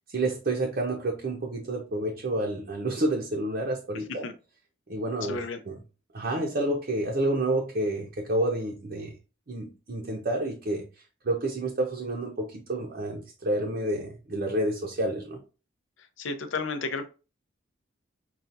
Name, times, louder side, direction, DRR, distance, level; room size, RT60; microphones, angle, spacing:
voice 1, 0.1-4.3 4.9-5.4 5.7-5.8 6.1-9.1 9.5-10.8 11.2-15.4, right 1 dB, 45° right, 0 dB, 0.6 m, -29 dB
voice 2, 3.9-4.3 5.2-5.6 16.2-17.1, left 3 dB, 70° left, 8 dB, 0.6 m, -33 dB
5.6 x 2.3 x 2.6 m, 0.32 s
head